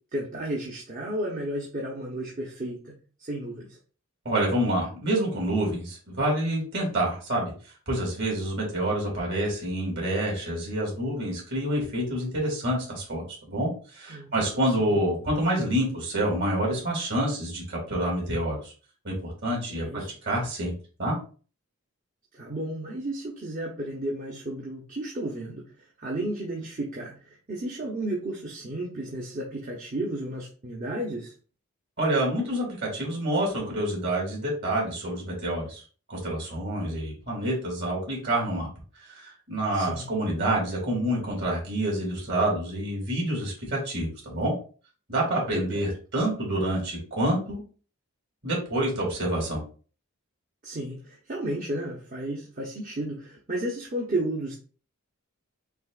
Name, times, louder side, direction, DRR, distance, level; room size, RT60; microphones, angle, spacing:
voice 1, 0.1-2.9 3.2-3.8 14.1-14.5 14.8-15.0 19.7-20.1 22.3-31.3 39.7-40.1 45.5-45.8 50.6-54.5, right 1 dB, 35° right, -3 dB, 0.9 m, -33 dB
voice 2, 4.2-7.5 7.9-18.7 19.0-20.7 21.0-21.1 32.0-35.8 36.1-38.7 39.1-44.5 45.1-47.6 48.4-49.6, right 1 dB, 50° right, -2 dB, 2.4 m, -27 dB
6.1 x 3.0 x 2.5 m, 0.39 s
head